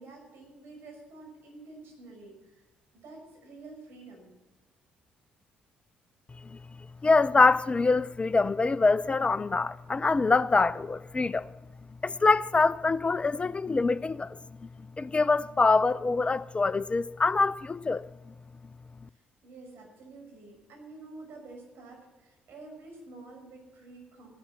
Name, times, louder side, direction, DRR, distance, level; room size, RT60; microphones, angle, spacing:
voice 1, 0.0-2.7 2.9-4.3 19.1-24.4, right 3 dB, 55° right, 5.9 m, -49 dB
voice 2, 7.0-11.5 12.0-14.4 15.0-18.0, left 3 dB, 25° left, 0.4 m, -24 dB
16.0 x 11.5 x 6.2 m
figure-of-eight pair, 45°, 5 cm